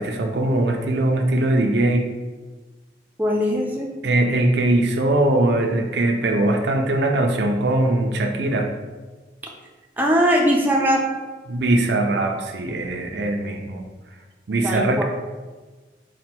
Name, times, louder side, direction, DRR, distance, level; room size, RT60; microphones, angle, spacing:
voice 1, 0.0-2.1 4.0-8.7 11.5-13.8 14.5-15.0, right 1 dB, 70° right, 4 dB, 0.5 m, -21 dB
voice 2, 3.2-3.9 10.0-11.0 14.6-15.0, equal, 10° right, -1 dB, 0.4 m, -20 dB
4.3 x 2.2 x 4.3 m, 1.3 s
head